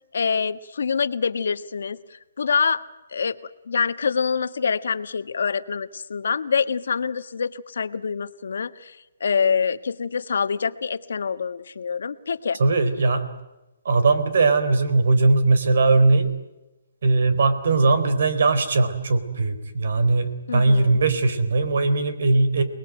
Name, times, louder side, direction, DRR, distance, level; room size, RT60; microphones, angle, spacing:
voice 1, 0.1-2.8 3.1-3.4 3.7-12.6 20.5-21.0, left 6 dB, 75° left, 11 dB, 1.4 m, -25 dB
voice 2, 12.6-13.2 13.9-16.3 17.0-22.6, right 3 dB, 65° right, 12 dB, 3.9 m, -19 dB
28.5 x 20.5 x 9.1 m, 1.0 s
hypercardioid pair, 165°, 0 cm